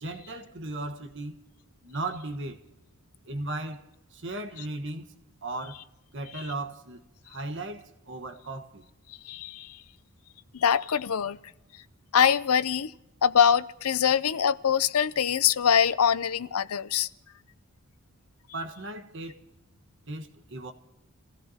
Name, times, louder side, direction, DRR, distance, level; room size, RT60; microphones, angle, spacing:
voice 1, 0.0-1.3 1.8-2.6 3.2-5.1 5.4-5.8 6.1-8.8 18.5-19.4 20.1-20.7, right 2 dB, 55° right, 1.4 m, -36 dB
voice 2, 9.3-9.7 10.5-11.4 12.1-12.9 13.2-17.1, left 8 dB, 85° left, 0.6 m, -23 dB
29.5 x 16.0 x 2.9 m
head